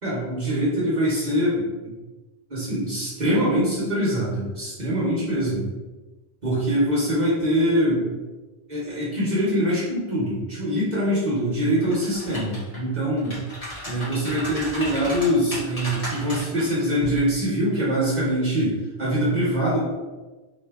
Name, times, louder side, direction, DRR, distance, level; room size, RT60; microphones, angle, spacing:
voice 1, 0.0-1.6 2.5-5.7 6.4-8.1 8.7-13.4 13.8-19.8, equal, 45° right, -7 dB, 1.0 m, -23 dB
sound 1, 11.8-12.8 13.2-16.6 17.0-17.2, equal, 35° left, 1.2 m, -34 dB
3.3 x 2.6 x 3.4 m, 1.2 s
omnidirectional pair, 1.1 m